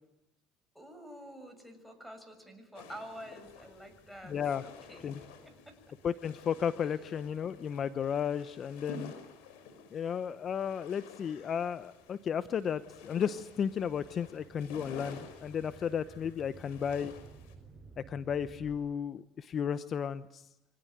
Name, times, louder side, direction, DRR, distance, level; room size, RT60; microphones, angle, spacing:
voice 1, 0.7-5.1 5.4-5.9 6.8-6.9, equal, ahead, 9 dB, 6.8 m, -49 dB
sound 1, 2.7-17.5, left 4 dB, 80° left, 5.8 m, -51 dB
sound 2, 3.4-10.2 10.8-18.7, right 4 dB, 20° right, 7.4 m, -58 dB
voice 2, 4.3-4.6 5.0-5.2 6.0-9.1 9.9-17.1 18.0-20.5, left 8 dB, 45° left, 13 dB, 0.9 m, -34 dB
25.5 x 18.5 x 9.1 m, 0.93 s
supercardioid pair, 85°, 0 cm